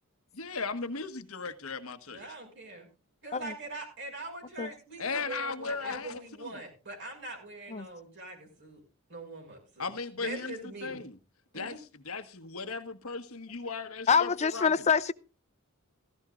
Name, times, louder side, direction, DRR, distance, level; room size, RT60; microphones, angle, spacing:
voice 1, 0.3-2.2 5.0-6.6 9.8-11.2 11.5-14.9, left 4 dB, 75° left, 1.4 m, -37 dB
voice 2, 2.1-2.9 3.2-8.8 9.1-9.9 10.2-11.0 11.5-11.8, right 2 dB, 55° right, 6.0 m, -42 dB
voice 3, 14.1-15.1, left 6 dB, 30° left, 0.5 m, -25 dB
15.5 x 15.0 x 2.5 m
head